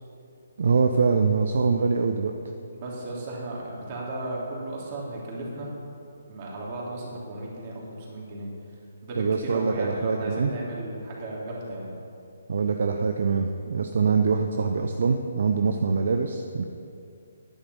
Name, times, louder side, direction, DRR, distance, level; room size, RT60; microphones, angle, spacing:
voice 1, 0.6-2.3 9.2-10.5 12.5-16.6, right 5 dB, 55° right, 5 dB, 0.7 m, -24 dB
voice 2, 2.7-5.7 6.3-8.5 9.0-11.9, right 2 dB, 35° right, -4 dB, 3.2 m, -35 dB
11.0 x 10.0 x 5.6 m, 2.6 s
figure-of-eight pair, 135°, 0 cm